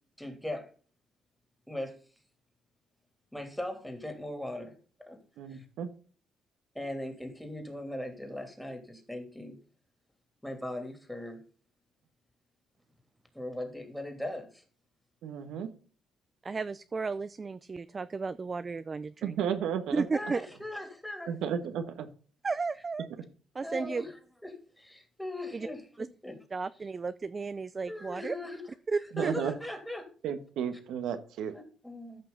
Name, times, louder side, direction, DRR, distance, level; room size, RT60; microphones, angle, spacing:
voice 1, 0.2-0.7 1.7-2.0 3.3-4.7 5.0-5.2 5.5-5.6 6.7-9.6 10.4-11.4 13.3-14.6 20.1-21.3 23.6-24.1 24.4-25.8 26.2-26.4 27.9-28.6 29.2-30.1 31.5-32.2, left 1 dB, 5° left, 5 dB, 2.9 m, -39 dB
voice 2, 5.4-5.9 15.2-15.7 19.2-20.0 21.3-22.1 29.1-29.5 30.2-31.5, right 8 dB, 85° right, 8 dB, 1.3 m, -33 dB
voice 3, 16.4-19.4 19.9-20.5 22.4-23.1 23.5-24.0 25.5-25.7 26.0-26.1 26.5-28.4 28.9-29.3, right 4 dB, 30° right, 14 dB, 0.4 m, -33 dB
13.5 x 5.7 x 3.9 m, 0.41 s
cardioid pair, 90°, 0 cm